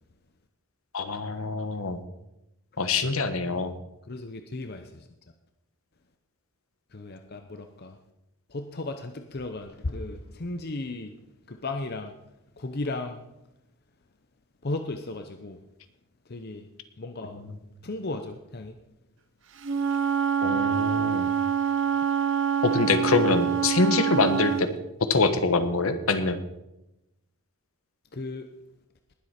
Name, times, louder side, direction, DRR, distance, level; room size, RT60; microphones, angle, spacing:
voice 1, 0.9-2.0 2.8-3.7 17.3-17.4 20.4-21.3 22.6-24.7 25.1-26.4, left 3 dB, 70° left, 10 dB, 1.2 m, -24 dB
voice 2, 4.1-5.0 6.9-8.0 8.5-11.1 11.5-12.1 12.6-13.2 14.6-15.6 16.3-16.7 17.0-17.3 17.8-18.8 28.1-28.5, left 2 dB, 45° left, 7 dB, 0.7 m, -35 dB
Wind instrument woodwind instrument, 19.6-24.7, right 8 dB, 55° right, 0.8 m, -25 dB
20.0 x 8.0 x 4.3 m, 0.90 s
head